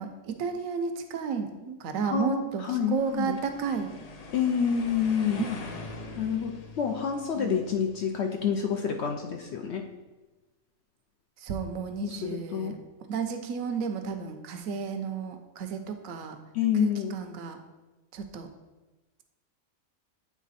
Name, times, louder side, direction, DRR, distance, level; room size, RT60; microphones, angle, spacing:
voice 1, 0.0-3.9 7.4-7.6 11.4-12.7 13.1-16.4 16.8-17.6 18.1-18.5, right 5 dB, 70° right, 7 dB, 1.0 m, -32 dB
voice 2, 2.1-3.4 4.3-5.5 6.2-9.8 12.0-12.7 16.5-17.1, left 7 dB, 65° left, 3 dB, 0.7 m, -28 dB
sound 1, 2.8-9.0, left 3 dB, 85° left, 0.3 m, -44 dB
8.4 x 3.4 x 4.1 m, 1.1 s
omnidirectional pair, 1.5 m